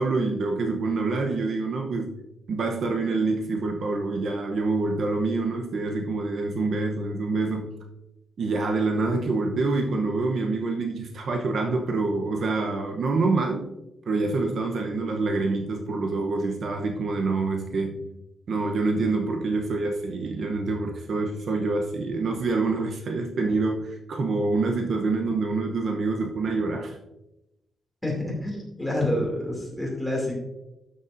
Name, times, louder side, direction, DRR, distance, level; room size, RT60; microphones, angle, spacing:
voice 1, 0.0-2.1 2.5-7.7 8.4-13.7 14.1-18.1 18.5-27.0, right 3 dB, 55° right, 3 dB, 0.8 m, -26 dB
voice 2, 28.0-30.4, left 1 dB, 5° left, -2 dB, 2.6 m, -28 dB
12.0 x 7.0 x 2.6 m, 0.93 s
wide cardioid pair, 160°, 0 cm